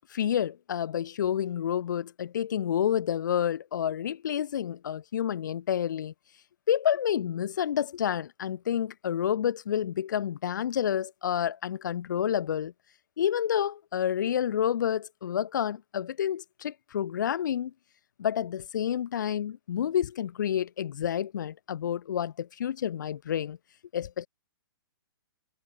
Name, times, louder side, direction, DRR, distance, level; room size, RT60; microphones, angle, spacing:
voice 1, 0.1-6.1 6.7-12.7 13.2-17.7 18.2-23.6 23.9-24.3, left 9 dB, 50° left, 5.0 m, -29 dB
hypercardioid pair, 175°, 13 cm